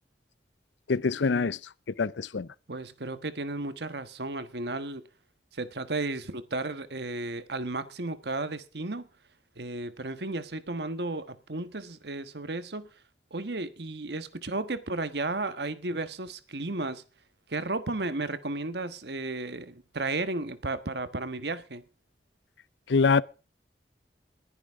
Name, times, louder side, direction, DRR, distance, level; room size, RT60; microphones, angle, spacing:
voice 1, 0.9-1.6 2.0-2.5 22.9-23.2, left 4 dB, 90° left, 0.6 m, -24 dB
voice 2, 2.7-5.0 5.5-9.1 9.6-12.9 13.3-17.0 17.5-21.8, right 2 dB, 70° right, 1.3 m, -34 dB
21.0 x 10.0 x 3.6 m
head